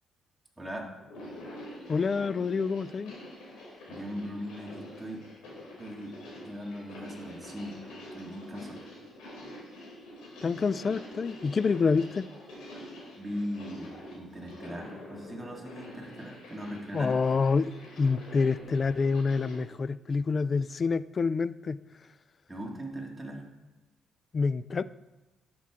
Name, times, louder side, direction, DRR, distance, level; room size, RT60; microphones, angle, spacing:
voice 1, 0.6-0.9 3.9-5.2 5.8-7.8 8.1-8.8 13.2-17.2 22.5-23.4, equal, 10° right, -1 dB, 2.0 m, -39 dB
sound 1, 1.0-19.6, left 1 dB, 85° left, 2.9 m, -46 dB
voice 2, 1.9-3.1 10.4-12.3 16.9-21.8 24.3-24.8, left 4 dB, 40° left, 17 dB, 0.3 m, -27 dB
11.5 x 6.3 x 3.7 m, 1.1 s
cardioid pair, 90°, 0 cm